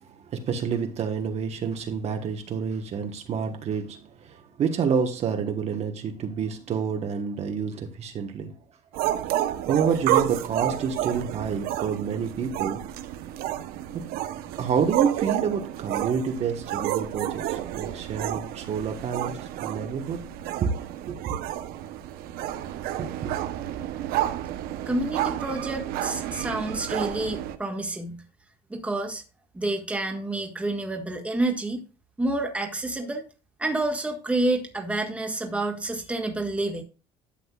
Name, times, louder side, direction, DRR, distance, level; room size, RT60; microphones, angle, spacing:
voice 1, 0.1-8.6 9.7-12.8 13.9-14.1 14.6-20.2 20.6-20.7 21.1-21.3 23.0-23.3, right 6 dB, 45° right, 1.3 m, -28 dB
sound 1, 8.9-27.6, right 12 dB, 80° right, 0.9 m, -30 dB
voice 2, 24.9-28.2 28.7-29.2 29.5-31.8 32.2-33.2 33.6-36.8, right 2 dB, 10° right, 1.7 m, -28 dB
11.5 x 7.8 x 2.4 m
cardioid pair, 140°, 15 cm